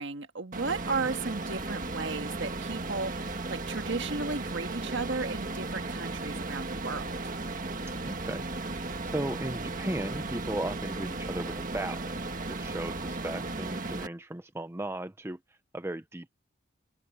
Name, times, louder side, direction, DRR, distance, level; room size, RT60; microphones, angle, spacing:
voice 1, 0.0-7.3, right 3 dB, 60° right, 1.7 m, -34 dB
sound 1, 0.5-14.1, right 2 dB, 40° right, 1.6 m, -35 dB
voice 2, 8.0-8.5 9.0-12.1 12.5-16.4, right 1 dB, 10° right, 0.5 m, -36 dB
head